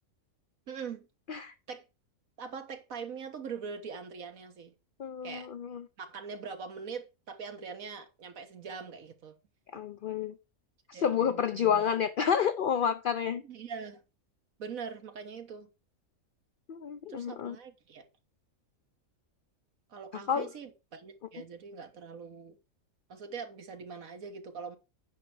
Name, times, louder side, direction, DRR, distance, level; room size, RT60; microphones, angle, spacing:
voice 1, 0.7-1.1 1.7-1.8 2.4-4.7 5.2-5.5 6.0-9.4 10.9-11.9 13.4-14.0 14.6-15.7 17.1-18.1 19.9-22.6 23.1-24.8, right 6 dB, 70° right, 1.7 m, -42 dB
voice 2, 5.0-5.9 9.7-10.3 10.9-13.4 16.7-17.6 20.3-20.5, left 8 dB, 55° left, 0.6 m, -29 dB
9.3 x 5.7 x 4.8 m
omnidirectional pair, 1.5 m